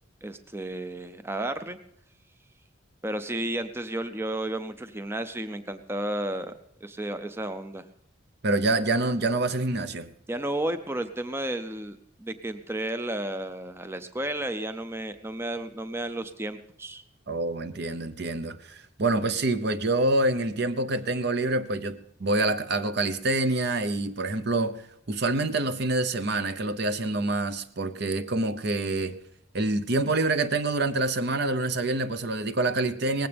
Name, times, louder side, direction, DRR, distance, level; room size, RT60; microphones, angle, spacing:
voice 1, 0.2-1.8 3.0-6.5 6.8-7.9 10.3-17.0, right 1 dB, 10° right, 10 dB, 0.5 m, -32 dB
voice 2, 8.4-10.1 17.3-24.7 25.1-29.1 29.5-33.3, right 2 dB, 55° right, 12 dB, 0.8 m, -26 dB
19.0 x 15.5 x 3.4 m, 0.75 s
head